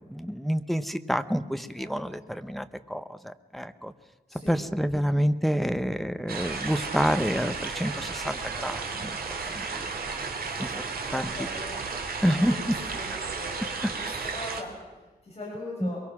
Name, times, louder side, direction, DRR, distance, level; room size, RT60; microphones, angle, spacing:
voice 1, 0.1-3.9 4.5-9.2 9.5-10.3 10.6-10.7 11.1-11.3 12.2-12.5 15.8-15.9, equal, ahead, 10 dB, 0.8 m, -28 dB
voice 2, 1.7-2.3 4.3-4.6 10.4-10.7 11.1-12.6 12.9-16.0, left 1 dB, 40° left, -4 dB, 6.2 m, -42 dB
sound 1, 6.3-14.6, right 4 dB, 65° right, 2.2 m, -33 dB
22.5 x 22.5 x 6.0 m, 1.2 s
wide cardioid pair, 160°, 17 cm